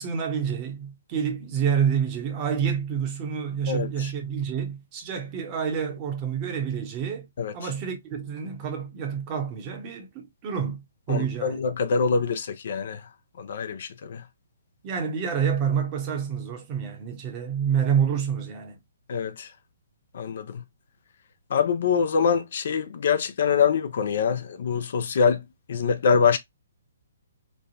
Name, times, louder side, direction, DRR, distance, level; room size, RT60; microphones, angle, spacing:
voice 1, 0.0-7.3 7.5-11.6 14.8-18.8, right 7 dB, 30° right, 0.8 m, -28 dB
voice 2, 3.7-4.1 7.4-7.5 11.1-13.0 13.4-14.2 19.1-19.5 20.1-20.6 21.5-25.4 25.7-26.4, left 6 dB, 50° left, 0.4 m, -24 dB
3.2 x 2.1 x 2.6 m
figure-of-eight pair, 125°, 0 cm